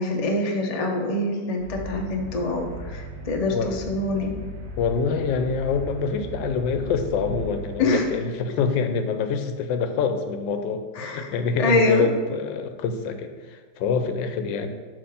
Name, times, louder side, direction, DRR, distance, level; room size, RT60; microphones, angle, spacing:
voice 1, 0.0-4.3 7.8-8.0 11.0-11.3 11.6-12.0, left 2 dB, 65° left, 1 dB, 0.3 m, -25 dB
sound 1, 1.6-8.0, equal, 50° right, 1.6 m, -37 dB
voice 2, 4.8-14.7, left 5 dB, 85° left, 8 dB, 1.3 m, -26 dB
7.8 x 3.3 x 5.6 m, 1.5 s
omnidirectional pair, 2.0 m